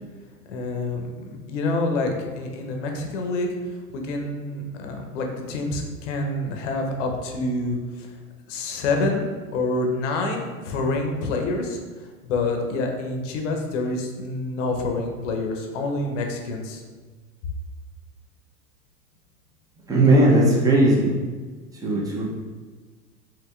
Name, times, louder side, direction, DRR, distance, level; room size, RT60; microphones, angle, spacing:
voice 1, 0.5-3.5 3.9-8.1 8.5-11.8 12.2-16.8, left 2 dB, 50° left, 3 dB, 0.7 m, -27 dB
voice 2, 19.9-21.1 21.8-22.2, right 1 dB, 10° right, -4 dB, 0.5 m, -17 dB
5.0 x 2.9 x 2.3 m, 1.4 s
figure-of-eight pair, 95°, 47 cm